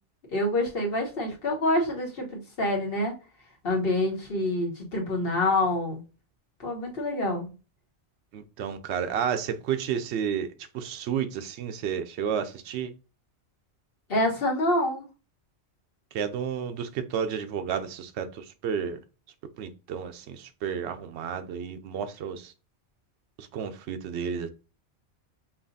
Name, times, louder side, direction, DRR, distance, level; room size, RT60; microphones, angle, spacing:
voice 1, 0.3-3.1 3.6-6.0 6.6-7.5 14.1-15.0, left 1 dB, 55° left, 1.4 m, -26 dB
voice 2, 8.3-10.5 10.7-12.9 16.1-19.0 19.6-22.5 23.4-24.5, right 8 dB, 75° right, 0.8 m, -31 dB
5.6 x 2.4 x 2.6 m
omnidirectional pair, 1.2 m